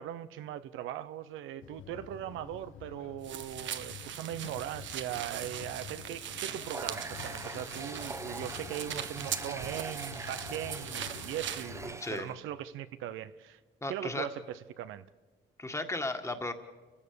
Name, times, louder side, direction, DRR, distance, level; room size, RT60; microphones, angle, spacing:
voice 1, 0.0-13.6 13.9-15.1, right 11 dB, 90° right, 0.8 m, -40 dB
sound 1, 1.6-12.0, left 10 dB, 80° left, 1.1 m, -49 dB
sound 2, 3.2-11.7, right 10 dB, 70° right, 1.1 m, -40 dB
Water tap faucet, 6.6-12.3, right 2 dB, 15° right, 1.0 m, -43 dB
voice 2, 13.8-14.3 15.6-16.5, left 2 dB, 15° left, 1.9 m, -34 dB
29.0 x 15.5 x 7.0 m
cardioid pair, 90°, 20 cm